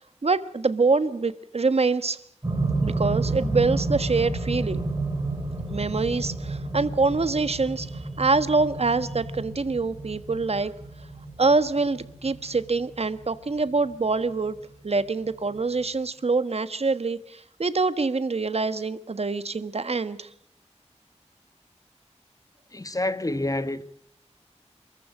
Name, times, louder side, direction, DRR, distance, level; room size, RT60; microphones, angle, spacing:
voice 1, 0.2-2.2 2.8-4.8 5.7-10.7 11.4-14.6 14.8-20.3, right 3 dB, 60° right, 1.3 m, -25 dB
sound 1, 2.4-14.6 15.5-15.6, right 2 dB, 30° right, 6.3 m, -30 dB
voice 2, 22.7-23.8, left 1 dB, 30° left, 1.3 m, -28 dB
27.5 x 14.5 x 8.3 m
wide cardioid pair, 80°, 12 cm